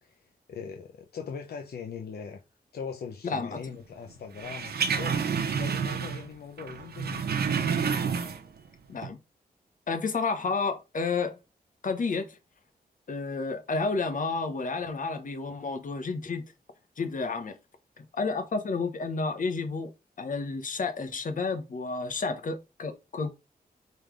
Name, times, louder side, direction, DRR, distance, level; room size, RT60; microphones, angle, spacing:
voice 1, 0.0-2.4 2.7-5.2 5.6-7.3, left 6 dB, 85° left, 0.9 m, -40 dB
voice 2, 3.2-3.6 8.9-9.2 9.9-11.4 11.8-12.4 13.1-16.4 17.0-17.6 18.0-19.9 20.2-23.3, left 4 dB, 55° left, 1.2 m, -31 dB
sound 1, 4.4-6.3 6.6-8.6 8.9-9.1, right 6 dB, 85° right, 1.1 m, -29 dB
5.4 x 3.9 x 5.1 m
wide cardioid pair, 105°, 16 cm